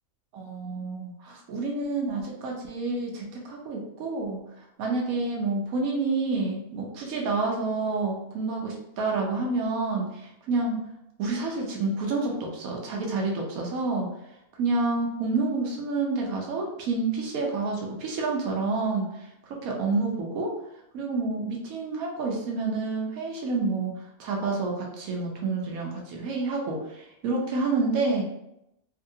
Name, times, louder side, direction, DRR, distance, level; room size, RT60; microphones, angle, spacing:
voice 1, 0.3-10.9 11.2-14.1 14.6-20.5 20.9-28.2, right 3 dB, 85° right, -1 dB, 1.1 m, -29 dB
2.8 x 2.6 x 2.6 m, 0.83 s
omnidirectional pair, 1.4 m